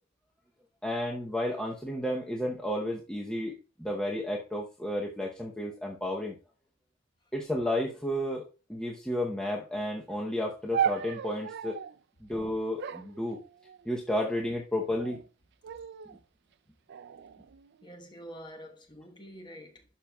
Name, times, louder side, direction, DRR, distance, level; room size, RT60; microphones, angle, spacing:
voice 1, 0.8-3.5 3.8-6.3 7.3-8.4 8.7-11.8 12.2-13.4 13.9-15.2, left 1 dB, 5° left, 0.8 m, -32 dB
sound 1, 10.7-12.0 12.8-14.0 14.8-15.3 15.6-16.2 16.9-17.9, right 8 dB, 50° right, 0.3 m, -35 dB
voice 2, 17.8-19.8, equal, 20° left, 1.1 m, -47 dB
11.5 x 5.7 x 2.3 m
head